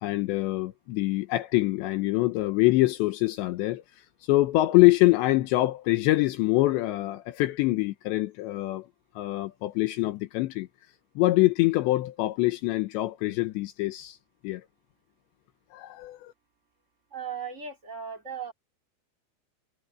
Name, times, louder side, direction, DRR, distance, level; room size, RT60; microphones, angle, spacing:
voice 1, 0.0-8.9 9.2-10.7 11.2-14.2 14.4-14.6 15.7-16.3, left 19 dB, 80° left, 3.1 m, -25 dB
voice 2, 17.1-18.5, right 7 dB, 20° right, 2.2 m, -37 dB
omnidirectional pair, 5.3 m